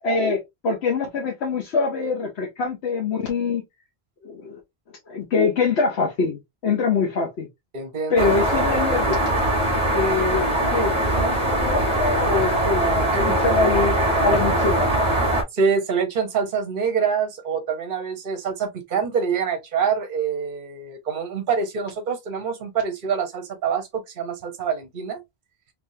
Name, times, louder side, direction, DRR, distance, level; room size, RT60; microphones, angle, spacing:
voice 1, 0.0-3.6 4.2-4.6 5.1-7.5 8.1-9.4 9.8-13.9 14.2-15.0, left 4 dB, 90° left, 1.2 m, -24 dB
voice 2, 7.7-8.3 13.3-13.4 15.5-25.2, right 6 dB, 55° right, 1.0 m, -25 dB
sound 1, 8.2-15.4, right 1 dB, 30° right, 1.3 m, -21 dB
3.5 x 3.0 x 2.6 m
omnidirectional pair, 1.1 m